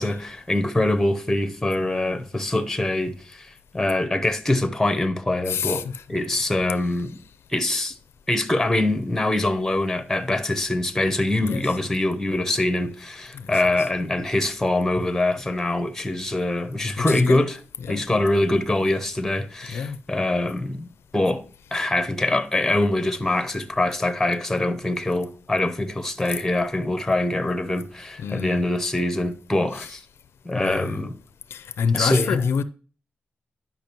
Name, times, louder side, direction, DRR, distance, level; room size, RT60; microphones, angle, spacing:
voice 1, 0.0-7.2 7.5-7.9 8.3-17.6 17.9-21.4 21.7-30.0 30.4-31.1 31.9-32.4, left 2 dB, 10° left, 0.8 m, -24 dB
voice 2, 5.5-6.0 11.4-11.6 13.3-13.5 17.0-17.4 17.8-18.1 19.7-20.0 28.2-28.6 29.7-29.9 30.6-31.0 31.5-32.6, left 6 dB, 75° left, 0.4 m, -27 dB
10.5 x 5.6 x 2.9 m
cardioid pair, 100°, 4 cm